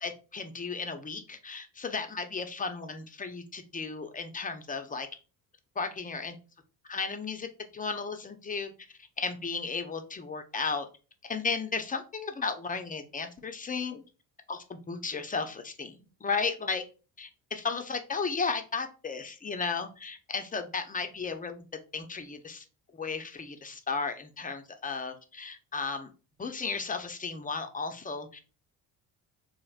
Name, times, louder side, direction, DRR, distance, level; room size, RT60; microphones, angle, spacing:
voice 1, 0.0-5.1 5.8-6.3 6.9-8.7 9.2-10.9 11.2-14.0 14.5-16.8 17.2-21.7 21.9-22.6 22.9-26.1 26.4-28.4, left 4 dB, 20° left, 7 dB, 0.5 m, -34 dB
3.2 x 2.5 x 2.4 m, 0.34 s
hypercardioid pair, 50°, 48 cm